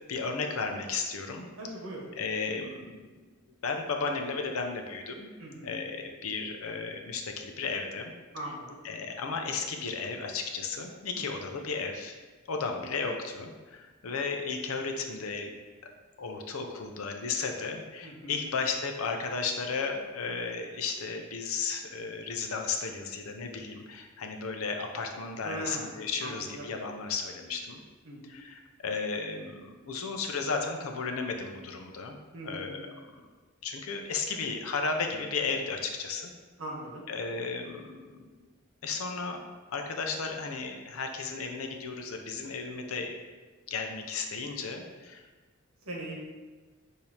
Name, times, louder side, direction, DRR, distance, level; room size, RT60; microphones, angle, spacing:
voice 1, 0.1-1.5 2.2-3.1 3.6-5.3 5.6-8.1 8.8-12.1 12.5-15.5 16.2-27.8 28.2-32.2 32.4-32.8 33.6-36.3 37.1-38.5 38.8-39.4 39.7-43.1 43.7-45.2, left 4 dB, 85° left, 4 dB, 0.6 m, -34 dB
voice 2, 1.6-2.0 5.4-5.9 8.3-8.8 11.2-11.3 18.0-18.4 25.4-25.9 26.2-26.7 28.0-28.3 32.3-32.8 36.6-37.0 45.8-46.1, right 1 dB, 70° right, -2 dB, 1.2 m, -40 dB
6.5 x 2.7 x 2.9 m, 1.3 s
head